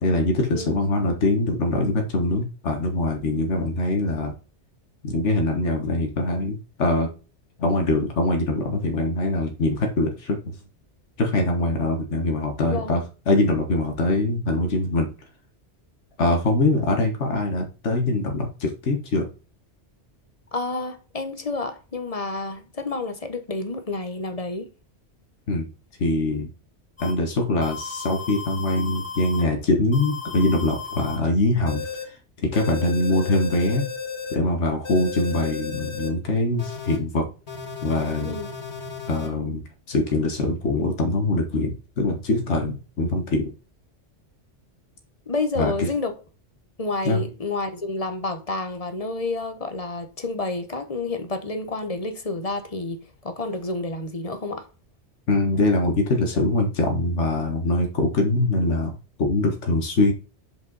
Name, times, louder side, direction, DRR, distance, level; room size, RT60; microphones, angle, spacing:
voice 1, 0.0-4.3 5.0-7.1 7.6-10.4 11.2-15.1 16.2-19.2 25.5-25.7 26.0-26.5 27.0-32.2 32.4-33.9 34.3-37.3 37.8-38.4 39.1-39.6 39.9-43.5 45.6-45.9 47.0-47.2 55.3-58.9 59.2-60.1, left 2 dB, 90° left, 1.6 m, -23 dB
voice 2, 20.5-24.7 38.2-38.5 45.3-46.1 46.8-54.7, left 3 dB, 35° left, 1.1 m, -29 dB
sound 1, 27.0-27.1 27.6-29.4 29.9-31.2 31.7-32.0 32.5-34.3 34.8-36.1 36.6-37.0 37.5-39.3, left 5 dB, 70° left, 2.6 m, -34 dB
7.3 x 5.2 x 4.0 m
omnidirectional pair, 1.2 m